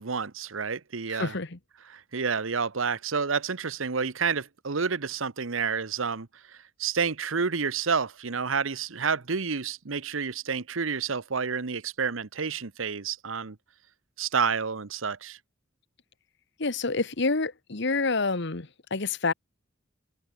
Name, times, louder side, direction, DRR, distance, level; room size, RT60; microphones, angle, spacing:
voice 1, 0.0-1.4 1.9-6.3 6.8-13.6 14.2-15.4, right 5 dB, 85° right, 1.0 m, -29 dB
voice 2, 1.2-1.6 16.6-19.3, left 3 dB, 60° left, 1.4 m, -28 dB
head